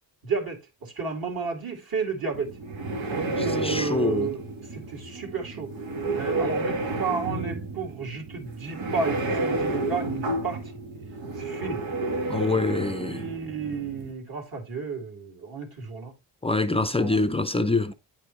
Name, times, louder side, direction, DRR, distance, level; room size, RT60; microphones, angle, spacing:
voice 1, 0.2-2.6 3.1-4.4 4.7-5.7 6.1-10.7 11.4-11.8 13.1-16.1 16.7-17.2, right 5 dB, 50° right, 2.8 m, -32 dB
sound 1, 2.3-14.1, right 2 dB, 85° right, 1.8 m, -31 dB
voice 2, 3.4-4.3 12.3-13.2 16.4-17.9, left 2 dB, 15° left, 0.5 m, -25 dB
9.1 x 4.8 x 3.2 m
cardioid pair, 100°, 44 cm